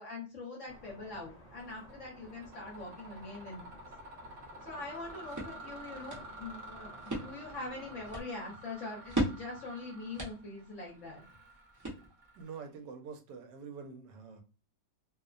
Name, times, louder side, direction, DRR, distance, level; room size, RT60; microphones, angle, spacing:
voice 1, 0.0-3.8 4.6-11.2, left 3 dB, 55° left, 1.0 m, -43 dB
sound 1, 0.7-8.2, equal, 75° left, 0.5 m, -54 dB
Mechanisms, 1.6-1.9 2.3-12.8, right 1 dB, 55° right, 0.9 m, -51 dB
sound 2, 4.8-12.4, right 1 dB, 30° right, 0.3 m, -40 dB
voice 2, 12.3-14.4, right 5 dB, 85° right, 1.2 m, -46 dB
2.9 x 2.1 x 2.4 m
omnidirectional pair, 1.8 m